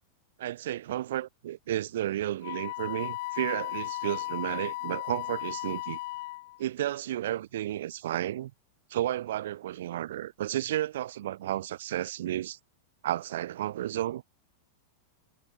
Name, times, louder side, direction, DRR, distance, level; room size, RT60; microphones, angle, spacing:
voice 1, 0.4-6.0 6.6-8.5 8.9-12.6 13.0-14.2, right 13 dB, 55° right, 1.7 m, -32 dB
Wind instrument woodwind instrument, 2.4-6.6, left 20 dB, 50° left, 3.5 m, -36 dB
figure-of-eight pair, 95°, 0 cm